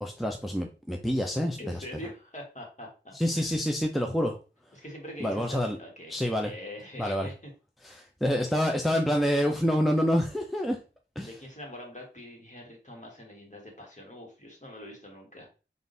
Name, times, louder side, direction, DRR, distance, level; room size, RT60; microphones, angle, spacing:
voice 1, 0.0-1.6 3.1-4.4 5.2-5.8 6.1-6.5 7.0-7.3 7.8-10.8 11.2-11.3, equal, ahead, 2 dB, 0.5 m, -27 dB
voice 2, 1.6-3.6 4.7-7.5 11.2-15.5, left 1 dB, 40° left, -1 dB, 1.6 m, -44 dB
3.7 x 2.6 x 3.9 m, 0.33 s
wide cardioid pair, 45°, 19 cm